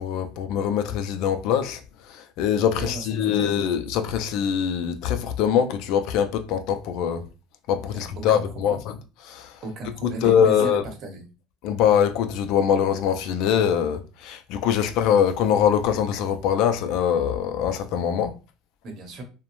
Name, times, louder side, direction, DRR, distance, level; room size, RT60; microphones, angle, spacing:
voice 1, 0.0-1.8 2.1-7.2 7.7-9.0 9.2-9.6 10.0-10.8 11.6-18.3, left 8 dB, 65° left, 0.3 m, -23 dB
voice 2, 2.8-3.7 7.8-8.8 9.6-11.2 18.8-19.2, right 2 dB, 50° right, 0.8 m, -37 dB
2.9 x 2.0 x 2.5 m
supercardioid pair, 120°, 0 cm